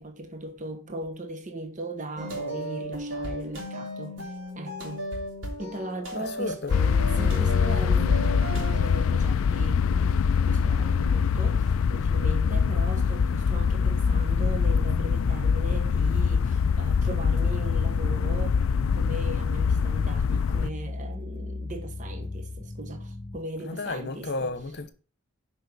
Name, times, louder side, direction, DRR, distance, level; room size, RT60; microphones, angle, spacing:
voice 1, 0.0-5.1 5.6-6.6 7.2-18.6 18.9-24.5, right 2 dB, 35° right, 1.1 m, -38 dB
sound 1, 2.2-9.2, right 1 dB, 60° right, 3.2 m, -35 dB
voice 2, 6.2-6.8 23.6-24.9, left 3 dB, 50° left, 0.9 m, -33 dB
sound 2, 6.7-20.7, left 6 dB, 75° left, 0.4 m, -24 dB
sound 3, 9.5-23.4, left 2 dB, 20° left, 0.6 m, -37 dB
6.7 x 5.5 x 7.0 m
head